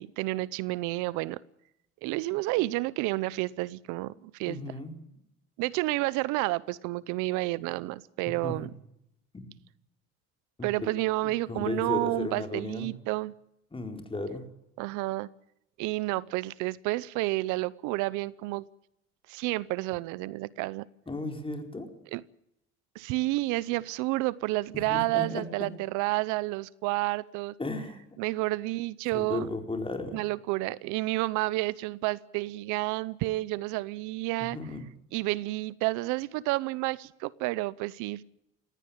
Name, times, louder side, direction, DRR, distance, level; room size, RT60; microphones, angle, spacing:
voice 1, 0.0-1.4 2.0-4.6 5.6-8.7 10.6-13.3 14.8-15.3 15.8-18.7 19.3-20.8 22.1-22.2 22.9-27.5 28.2-29.5 30.1-34.6 35.1-38.2, right 20 dB, 80° right, 21 dB, 0.8 m, -30 dB
voice 2, 4.5-4.9 8.4-8.6 9.3-9.4 10.6-10.9 11.2-12.9 13.7-14.5 21.1-21.9 24.7-25.4 27.6-28.0 29.1-30.2 34.5-34.8, left 2 dB, 20° left, 5 dB, 4.6 m, -35 dB
19.5 x 16.0 x 8.7 m, 0.81 s
supercardioid pair, 85°, 29 cm